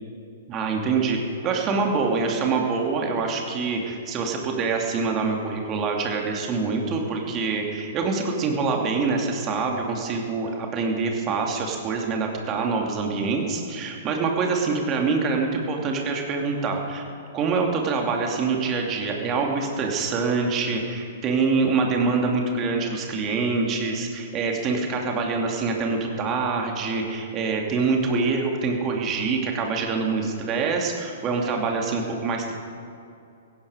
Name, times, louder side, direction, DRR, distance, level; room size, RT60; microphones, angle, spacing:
voice 1, 0.5-17.0 17.3-32.5, right 4 dB, 25° right, 1 dB, 2.5 m, -25 dB
17.0 x 16.0 x 5.0 m, 2.6 s
figure-of-eight pair, 110°, 0 cm